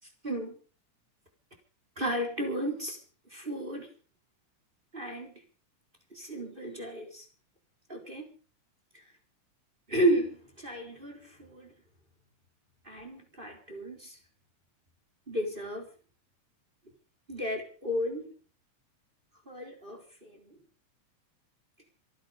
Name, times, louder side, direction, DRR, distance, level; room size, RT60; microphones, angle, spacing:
voice 1, 0.2-0.6 2.0-3.0 3.3-3.9 4.9-5.3 6.1-7.3 7.9-8.3 8.9-9.0 9.9-11.7 12.8-14.2 15.3-15.9 17.3-18.3 19.5-20.6, right 1 dB, 15° right, 3 dB, 4.3 m, -33 dB
26.5 x 10.0 x 5.1 m, 0.38 s
omnidirectional pair, 3.5 m